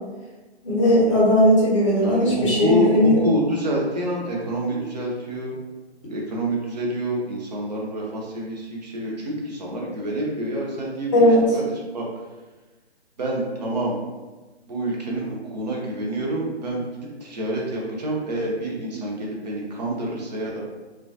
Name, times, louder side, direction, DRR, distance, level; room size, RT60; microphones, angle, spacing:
voice 1, 0.6-3.3 11.1-11.4, equal, 30° left, -5 dB, 0.8 m, -17 dB
voice 2, 2.0-5.6 6.1-12.0 13.2-14.0 14.7-16.8 17.2-20.6, right 1 dB, 40° right, -3 dB, 0.7 m, -27 dB
2.9 x 2.3 x 2.6 m, 1.2 s
figure-of-eight pair, 145°, 34 cm